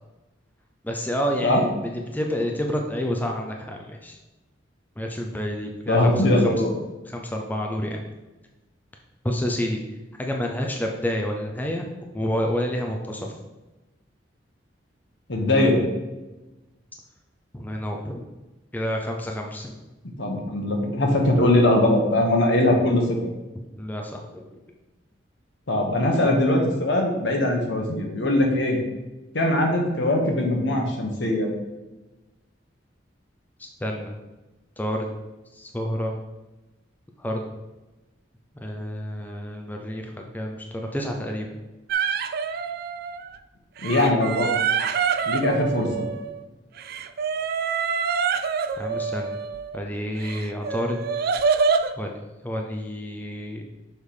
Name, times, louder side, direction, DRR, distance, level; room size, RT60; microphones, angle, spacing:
voice 1, 0.8-1.7 2.1-4.2 5.0-6.6 7.1-8.0 9.2-9.8 10.2-11.8 12.1-13.3 17.5-18.3 18.7-19.8 23.8-24.4 33.8-34.1 34.8-35.2 35.5-36.1 37.2-37.4 38.6-41.5 48.8-49.3 49.7-51.0 52.0-52.1 52.4-53.6, equal, 10° left, 1 dB, 0.5 m, -29 dB
voice 2, 5.9-6.8 15.3-15.8 20.2-23.2 25.7-28.8 29.3-31.5 43.8-44.5 45.3-46.0, left 1 dB, 65° left, 1 dB, 1.3 m, -21 dB
sound 1, 41.9-43.4 43.8-46.4 46.8-49.8 50.2-51.9, right 5 dB, 55° right, 0.4 m, -26 dB
6.5 x 3.5 x 4.8 m, 1.1 s
head